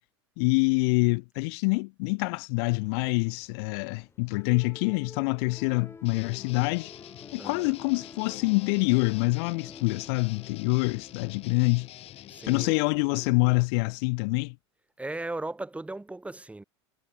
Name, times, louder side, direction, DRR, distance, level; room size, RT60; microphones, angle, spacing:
voice 1, 0.4-6.9 7.3-11.9 12.5-14.6, left 30 dB, 60° left, 1.9 m, -26 dB
sound 1, 2.8-13.7, left 4 dB, 15° left, 3.9 m, -51 dB
Guitar, 6.0-12.7, left 13 dB, 45° left, 2.4 m, -47 dB
voice 2, 7.4-7.7 12.3-12.8 15.0-16.6, right 2 dB, 10° right, 4.6 m, -37 dB
hypercardioid pair, 90°, 15 cm